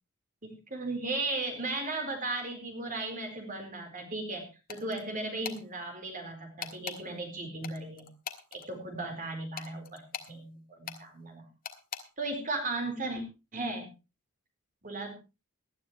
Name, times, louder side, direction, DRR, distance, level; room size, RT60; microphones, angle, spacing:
voice 1, 0.4-8.1 8.5-11.4 12.2-13.2 13.5-13.9 14.8-15.1, right 2 dB, 40° right, 4 dB, 4.3 m, -36 dB
sound 1, 4.7-5.0 5.4-5.6 6.6-7.0 7.6-8.7 9.6-10.3 10.9-11.0 11.6-12.0, left 7 dB, 45° left, 1.5 m, -40 dB
19.0 x 12.0 x 3.1 m, 0.29 s
head